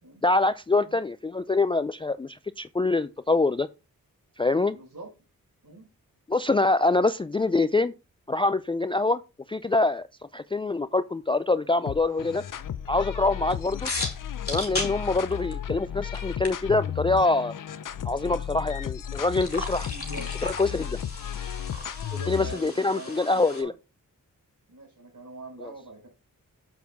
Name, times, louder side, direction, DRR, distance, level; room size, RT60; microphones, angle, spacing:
voice 1, 0.2-3.7 4.4-4.8 6.3-7.9 8.3-9.2 9.5-10.1 10.3-12.4 12.9-13.9 14.5-17.5 18.0-19.9 20.4-21.0 22.3-23.7 25.6-25.7, left 3 dB, 15° left, 0.3 m, -25 dB
voice 2, 4.7-5.1 5.6-5.9 19.8-20.3 21.2-21.3 22.1-23.7 24.7-26.1, right 2 dB, 55° right, 5.0 m, -43 dB
sound 1, 11.9-22.7, left 9 dB, 60° left, 0.7 m, -34 dB
sound 2, 13.9-15.8 16.1-16.2 16.4-16.5 19.3-23.6, left 2 dB, 40° left, 3.1 m, -36 dB
7.3 x 5.9 x 3.6 m
cardioid pair, 45°, 36 cm